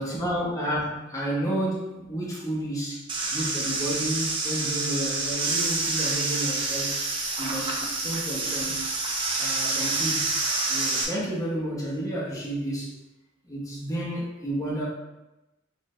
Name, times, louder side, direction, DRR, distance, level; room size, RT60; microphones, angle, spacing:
voice 1, 0.0-3.0 3.3-7.1 7.4-8.8 9.4-10.4 10.7-13.0 13.5-14.9, right 1 dB, 20° left, -6 dB, 0.9 m, -31 dB
sound 1, 3.1-11.0, right 3 dB, 25° right, 0.6 m, -28 dB
4.3 x 2.6 x 3.1 m, 0.97 s
head